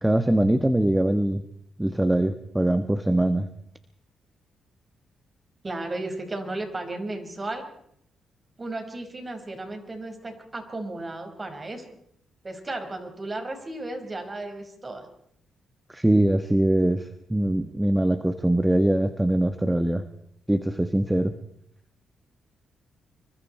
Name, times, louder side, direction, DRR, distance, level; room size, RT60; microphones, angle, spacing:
voice 1, 0.0-1.4 1.8-3.5 15.9-20.0 20.5-21.3, right 1 dB, 10° right, 9 dB, 1.3 m, -22 dB
voice 2, 5.6-7.6 8.6-11.9 12.4-15.1, right 2 dB, 30° right, 5 dB, 5.3 m, -34 dB
26.0 x 24.0 x 4.5 m, 0.73 s
cardioid pair, 80°, 0 cm